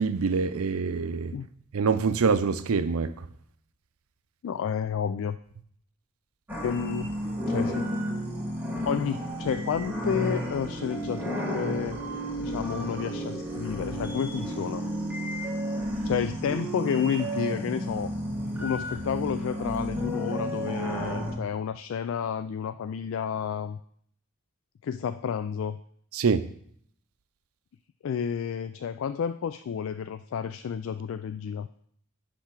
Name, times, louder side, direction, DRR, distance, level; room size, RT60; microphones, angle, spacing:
voice 1, 0.0-1.3 1.7-3.1 26.1-26.5, right 5 dB, 75° right, 0.5 m, -25 dB
voice 2, 4.4-5.4 6.6-7.1 7.5-7.9 8.9-12.0 12.4-14.9 16.0-18.1 18.6-23.8 24.8-25.8 28.0-31.7, left 7 dB, 60° left, 0.3 m, -30 dB
sound 1, 6.5-21.3, equal, 10° right, 1.5 m, -32 dB
10.0 x 3.5 x 5.9 m
head